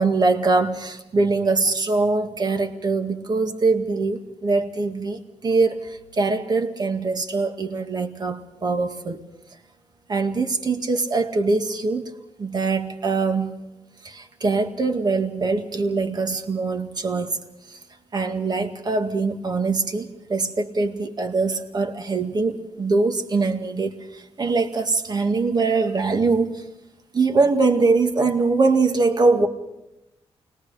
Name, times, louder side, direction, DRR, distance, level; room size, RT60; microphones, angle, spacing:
voice 1, 0.0-9.2 10.1-12.1 12.4-13.5 14.0-17.4 17.7-17.8 18.1-26.6 27.1-29.5, right 3 dB, 40° right, 5 dB, 2.1 m, -23 dB
29.0 x 21.0 x 5.1 m, 0.90 s
cardioid pair, 85°, 11 cm